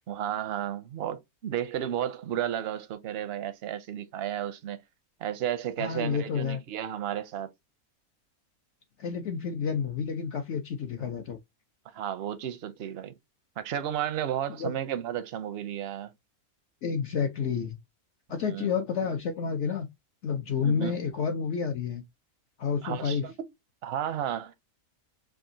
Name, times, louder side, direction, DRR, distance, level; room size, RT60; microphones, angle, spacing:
voice 1, 0.1-4.8 5.2-7.5 11.9-13.2 13.6-16.1 18.4-18.7 20.6-21.0 22.8-23.3 23.8-24.5, right 10 dB, 60° right, 0.7 m, -33 dB
voice 2, 5.8-6.6 9.0-11.4 14.6-14.7 16.8-17.8 18.3-19.9 20.2-22.0 22.6-23.2, left 6 dB, 65° left, 0.8 m, -30 dB
4.8 x 2.7 x 2.6 m
omnidirectional pair, 1.5 m